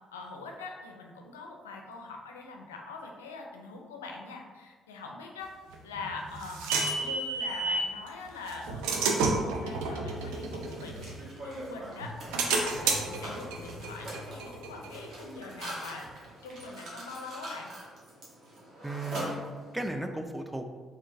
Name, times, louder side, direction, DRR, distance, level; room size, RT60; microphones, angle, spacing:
voice 1, 0.1-5.5 5.8-6.6 7.0-12.1 12.4-16.1 16.4-17.7, left 4 dB, 90° left, 1 dB, 0.4 m, -43 dB
sound 1, 5.7-7.9 8.5-11.6 12.0-15.4, right 3 dB, 80° right, 0.4 m, -31 dB
Mechanisms, 10.1-19.9, right 1 dB, 60° right, 1.2 m, -43 dB
voice 2, 18.8-20.8, right 1 dB, 10° right, 5 dB, 0.4 m, -36 dB
3.6 x 3.4 x 2.6 m, 1.4 s
hypercardioid pair, 50°, 0 cm